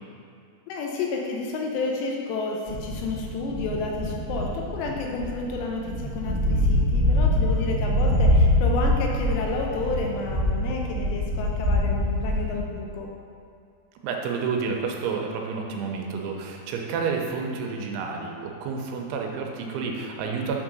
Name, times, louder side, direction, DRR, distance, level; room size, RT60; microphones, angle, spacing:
voice 1, 0.7-13.1, left 3 dB, 80° left, 0 dB, 2.7 m, -31 dB
sound 1, 2.7-12.6, left 1 dB, 60° right, 0.9 m, -24 dB
voice 2, 14.0-20.6, right 5 dB, 85° right, 1 dB, 3.1 m, -30 dB
8.2 x 3.7 x 6.1 m, 2.4 s
omnidirectional pair, 5.3 m